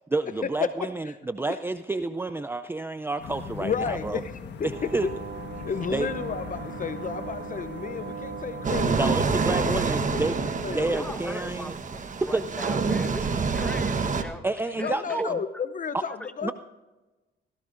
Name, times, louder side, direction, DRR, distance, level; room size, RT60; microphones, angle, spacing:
voice 1, 0.1-4.2 4.6-5.1 5.9-6.1 8.9-10.4 10.7-11.7 12.2-12.4 14.4-15.4 15.9-16.0 16.4-16.5, right 2 dB, 10° right, 11 dB, 0.4 m, -29 dB
voice 2, 0.6-1.2 1.5-1.6 3.6-4.3 4.6-5.1 5.6-9.2 9.6-10.9 14.8-16.5, left 6 dB, 40° left, 12 dB, 0.7 m, -32 dB
sound 1, 3.2-9.9, left 5 dB, 60° left, 1.4 m, -40 dB
sound 2, 4.7-9.7, right 7 dB, 60° right, 0.7 m, -39 dB
sound 3, 8.6-14.2, right 4 dB, 40° right, 1.2 m, -27 dB
voice 3, 10.9-12.0 12.3-13.3 13.5-14.4 14.8-15.2 16.2-16.3, left 1 dB, 5° left, 7 dB, 1.3 m, -38 dB
17.5 x 16.0 x 2.6 m, 1.1 s
cardioid pair, 90°, 20 cm